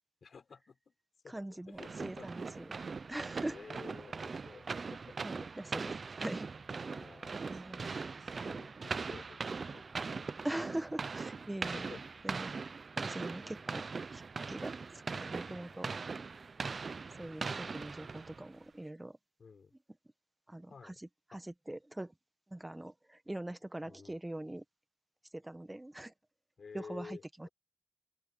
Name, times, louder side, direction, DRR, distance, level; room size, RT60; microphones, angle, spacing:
voice 1, 0.2-0.9 1.2-2.5 3.5-5.2 6.8-10.3 11.4-12.3 13.0-13.8 15.7-16.0 19.4-19.7 20.7-21.0 21.3-21.4 23.8-24.2 26.6-27.5, left 5 dB, 75° left, 5.4 m, -53 dB
voice 2, 1.3-2.7 3.1-3.6 5.2-6.5 7.3-7.9 10.4-11.9 12.2-12.5 13.0-13.8 14.1-14.7 15.1-15.9 17.1-19.2 20.5-20.9 21.3-22.1 22.5-24.6 25.3-26.1 26.7-27.5, right 1 dB, 20° right, 1.5 m, -42 dB
sound 1, 1.8-18.5, right 4 dB, 65° right, 0.6 m, -40 dB
open air
cardioid pair, 45°, 0 cm